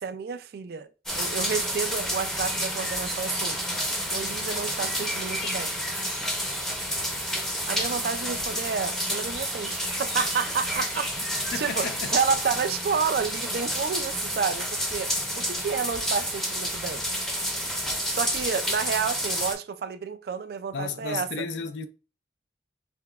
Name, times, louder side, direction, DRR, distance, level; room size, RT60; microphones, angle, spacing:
voice 1, 0.0-0.9 1.1-3.6 4.1-5.7 7.7-11.1 11.5-11.9 12.1-17.0 18.1-21.3, right 6 dB, 60° right, 0.3 m, -30 dB
sound 1, 1.1-19.5, equal, 5° left, 0.6 m, -29 dB
voice 2, 11.5-12.2 20.7-21.9, left 4 dB, 90° left, 0.4 m, -33 dB
5.7 x 2.2 x 2.3 m
head